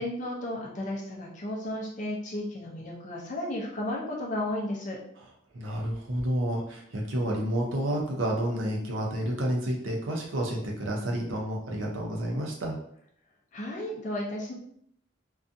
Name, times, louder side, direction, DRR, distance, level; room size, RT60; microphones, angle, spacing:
voice 1, 0.0-5.0 13.5-14.5, left 1 dB, 40° left, -2 dB, 0.5 m, -33 dB
voice 2, 5.5-12.8, right 1 dB, 80° right, 0 dB, 0.6 m, -30 dB
2.6 x 2.3 x 2.5 m, 0.67 s
head